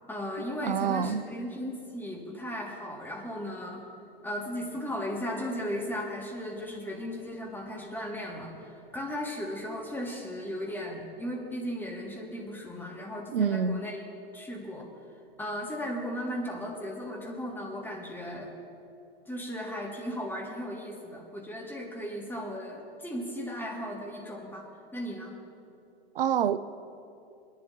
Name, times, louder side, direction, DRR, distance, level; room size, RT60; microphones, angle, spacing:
voice 1, 0.1-3.8 4.2-14.0 14.3-14.9 15.4-18.5 19.3-25.4, equal, 5° left, -2 dB, 2.2 m, -36 dB
voice 2, 0.6-1.2 13.3-13.8 26.2-26.6, right 8 dB, 65° right, 14 dB, 0.6 m, -26 dB
23.0 x 11.0 x 2.9 m, 2.6 s
figure-of-eight pair, 95°, 31 cm